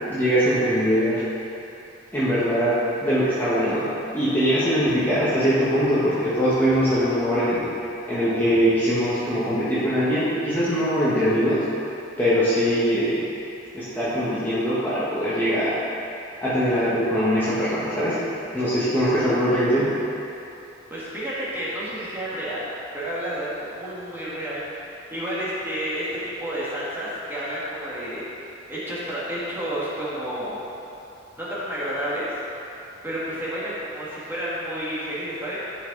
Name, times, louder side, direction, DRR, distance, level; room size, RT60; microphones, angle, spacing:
voice 1, 0.1-1.2 2.1-3.9 4.1-7.6 8.1-11.6 12.2-13.3 13.7-15.8 16.4-18.2 18.5-19.9, equal, 10° left, -12 dB, 1.4 m, -22 dB
voice 2, 20.9-30.6 31.4-32.4 33.0-35.6, equal, 10° right, -9 dB, 1.9 m, -30 dB
11.0 x 5.4 x 3.9 m, 2.9 s
head